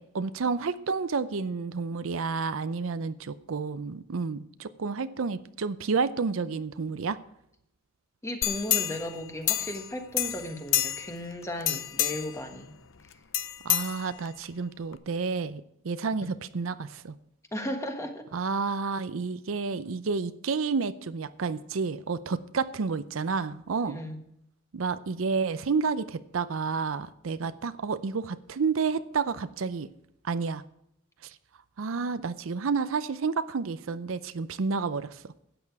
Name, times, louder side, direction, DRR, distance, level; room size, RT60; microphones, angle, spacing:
voice 1, 0.0-7.2 13.6-17.1 18.3-24.0 24.7-29.9 30.2-30.6 31.2-31.3 31.8-35.2, right 4 dB, 75° right, 14 dB, 0.5 m, -30 dB
voice 2, 8.2-12.7 17.5-18.3 23.8-24.2 27.4-27.5, left 1 dB, 15° left, 5 dB, 1.4 m, -35 dB
sound 1, 8.4-9.9 10.2-11.2 11.6-12.4 13.3-14.4 14.9-15.0, left 13 dB, 70° left, 0.6 m, -28 dB
12.5 x 8.8 x 4.7 m, 0.76 s
head